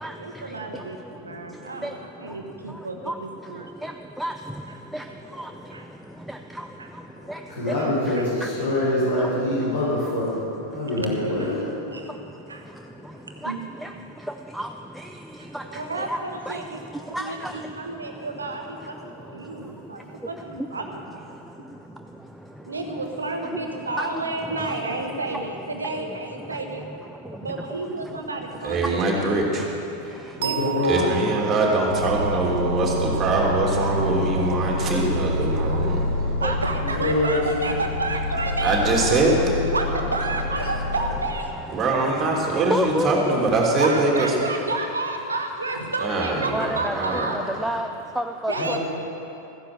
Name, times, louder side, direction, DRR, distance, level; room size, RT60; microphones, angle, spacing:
voice 1, 0.2-3.7 5.7-5.8 6.8-6.9 7.8-7.9 8.1-8.3 10.9-11.6 11.9-12.1 12.5-12.7 13.1-13.6 15.7-16.9 17.2-19.0 19.3-21.3 22.7-27.0 27.4-29.4 30.4-31.1 31.9-32.4 36.4-39.2 39.7-41.5 43.8-47.5 48.5-48.8, right 3 dB, 75° right, 4 dB, 1.2 m, -31 dB
voice 2, 6.3-6.7 7.3-7.4 8.1-8.5 9.2-9.3 13.4-13.5 13.8-13.9 14.5-14.7 15.0-15.1 15.5-16.2 16.5-16.6 17.1-17.6 24.0-24.1 24.6-24.8 29.5-29.6 31.3-32.4 34.9-35.0 36.4-36.6 40.6-40.8 41.1-41.2 41.8-43.5 46.5-47.9 48.2-48.8, right 1 dB, ahead, 5 dB, 0.5 m, -31 dB
voice 3, 7.2-10.3 10.6-11.6 18.1-18.2 30.4-31.2 37.0-37.4 48.5-48.8, left 1 dB, 65° left, -8 dB, 4.1 m, -24 dB
sound 1, 28.1-35.9, right 13 dB, 55° right, 0.9 m, -36 dB
voice 4, 28.6-29.6 30.8-36.0 38.6-39.3 41.7-44.3 46.0-47.3, right 2 dB, 25° right, -1 dB, 2.9 m, -23 dB
Aircraft, 31.9-41.2, left 1 dB, 90° left, 1.7 m, -27 dB
15.0 x 10.0 x 6.7 m, 2.9 s
figure-of-eight pair, 90°, 0 cm